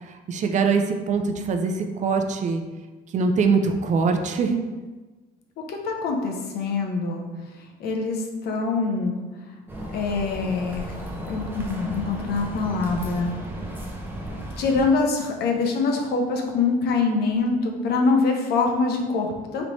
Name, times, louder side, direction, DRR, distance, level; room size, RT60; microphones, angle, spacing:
voice 1, 0.0-2.6 3.1-4.6, right 4 dB, 45° right, 5 dB, 0.4 m, -23 dB
voice 2, 5.7-7.3 7.8-9.2 9.9-10.9 11.3-13.3 14.6-19.6, left 4 dB, 70° left, 2 dB, 0.7 m, -24 dB
sound 1, 9.7-14.8, right 1 dB, 10° right, 0.7 m, -34 dB
3.3 x 2.9 x 4.0 m, 1.3 s
cardioid pair, 110°, 17 cm